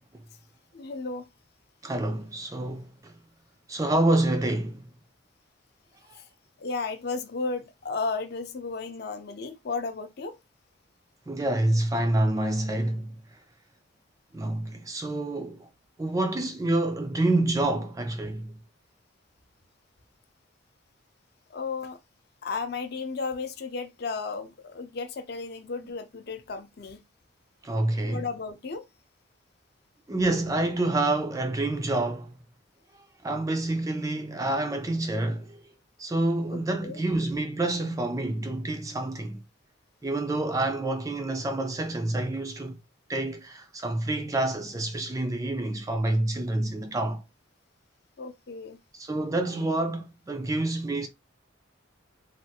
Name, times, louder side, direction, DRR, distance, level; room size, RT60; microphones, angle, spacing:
voice 1, 0.7-1.3 6.1-6.3 6.6-10.4 21.5-22.0 22.4-27.0 28.1-28.9 36.5-37.0 48.2-48.8, left 4 dB, 50° left, 0.5 m, -34 dB
voice 2, 1.8-3.1 3.7-4.9 11.3-13.2 14.3-15.7 16.0-18.5 27.6-28.2 30.1-32.3 33.2-35.6 36.0-39.4 40.0-42.8 43.1-47.2 48.9-51.1, right 2 dB, 15° right, 0.3 m, -27 dB
3.3 x 2.3 x 2.8 m
head